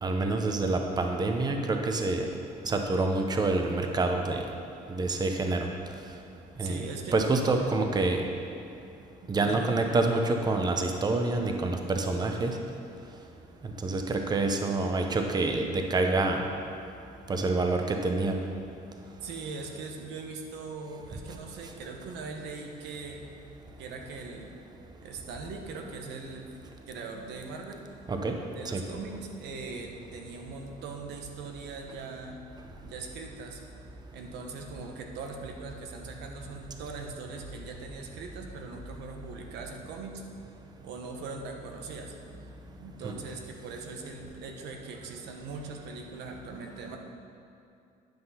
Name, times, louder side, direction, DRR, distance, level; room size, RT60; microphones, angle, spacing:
voice 1, 0.0-2.3 2.6-4.4 4.9-5.7 6.6-6.9 7.1-8.2 9.3-12.6 13.8-16.4 17.3-18.4 28.1-28.4 28.6-28.8 43.0-43.1, right 3 dB, 25° right, 4 dB, 0.8 m, -27 dB
voice 2, 6.6-7.1 7.6-7.7 9.4-9.7 19.2-23.2 23.8-24.6 25.0-26.5 26.9-27.8 28.5-32.4 32.8-33.6 34.1-40.2 40.8-42.1 42.8-47.0, right 4 dB, 85° right, 2 dB, 1.2 m, -40 dB
10.5 x 5.9 x 5.7 m, 2.5 s
cardioid pair, 110°, 17 cm